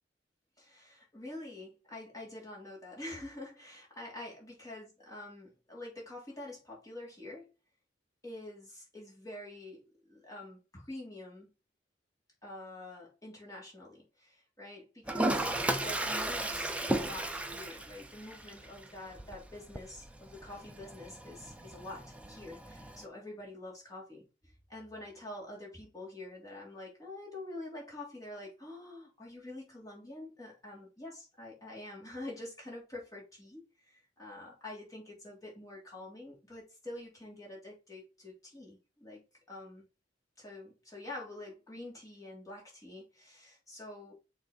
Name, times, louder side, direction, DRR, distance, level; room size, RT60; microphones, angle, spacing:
voice 1, 0.6-7.5 8.2-11.5 12.4-39.2 39.5-39.8 40.4-44.1, left 1 dB, 20° left, 3.4 m, -47 dB
Toilet flush, 15.1-23.0, right 1 dB, 5° right, 0.7 m, -36 dB
6.6 x 3.9 x 5.2 m
head